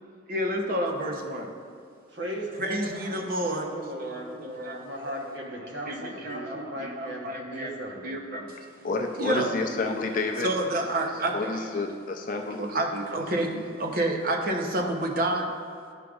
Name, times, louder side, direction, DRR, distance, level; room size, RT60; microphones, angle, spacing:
voice 1, 0.3-1.5 2.6-3.7 4.0-4.8 5.2-5.3 5.6-7.7 8.0-8.6 9.2-9.6 10.4-11.7 12.6-15.5, right 1 dB, 45° right, 2 dB, 0.6 m, -29 dB
voice 2, 2.1-8.1, right 1 dB, 60° right, 0 dB, 1.0 m, -37 dB
voice 3, 8.8-10.5 11.3-12.6, left 3 dB, 40° left, 3 dB, 0.5 m, -29 dB
11.0 x 4.9 x 2.4 m, 2.3 s
head